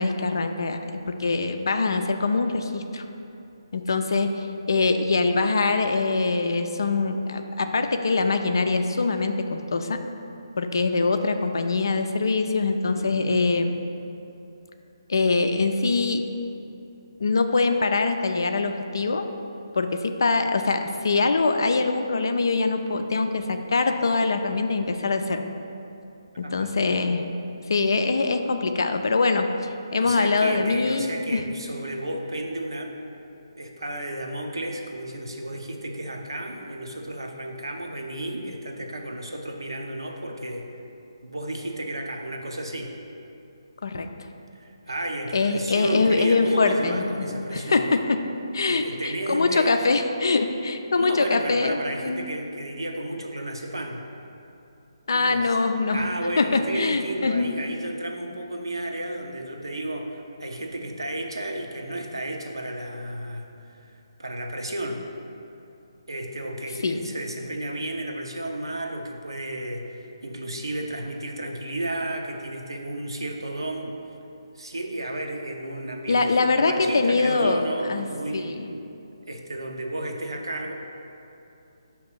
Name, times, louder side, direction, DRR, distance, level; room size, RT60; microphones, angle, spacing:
voice 1, 0.0-3.0 3.7-10.0 10.6-13.7 15.1-16.2 17.2-19.3 19.7-25.4 26.4-27.2 27.7-29.5 29.9-31.4 43.8-44.1 45.3-48.2 48.5-52.3 55.1-56.0 56.4-57.5 66.8-67.1 76.1-78.1 78.3-78.7, left 3 dB, 55° left, 7 dB, 0.4 m, -23 dB
voice 2, 30.0-33.0 33.6-40.6 41.2-42.9 44.5-47.9 48.7-49.8 50.9-54.0 55.1-55.4 55.9-65.0 66.1-74.0 74.6-78.8 79.3-80.7, right 1 dB, 70° right, 2 dB, 0.7 m, -33 dB
5.8 x 3.0 x 5.6 m, 2.8 s
figure-of-eight pair, 140°, 2 cm